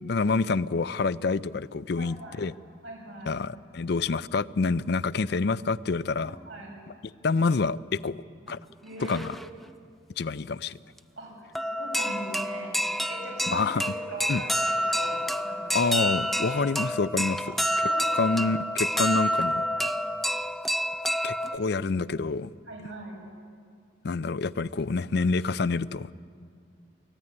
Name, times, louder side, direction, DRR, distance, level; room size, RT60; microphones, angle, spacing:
voice 1, 0.0-2.5 3.3-6.4 7.2-8.2 8.5-8.6 9.0-9.3 10.2-10.8 13.5-13.9 14.3-14.4 15.7-17.5 18.1-19.7 21.2-22.5 24.0-26.1, left 4 dB, 60° left, 17 dB, 0.5 m, -27 dB
voice 2, 2.0-2.4 2.8-3.4 6.2-6.7 8.8-9.2 11.2-11.3 11.6-12.7 13.1-15.8 17.8-18.2 22.7-23.2, right 1 dB, 90° right, 0 dB, 6.7 m, -40 dB
sound 1, 8.5-8.6 8.9-9.7 11.0-11.1 11.6-21.6, equal, ahead, 0.5 m, -28 dB
23.5 x 15.5 x 9.8 m, 2.2 s
head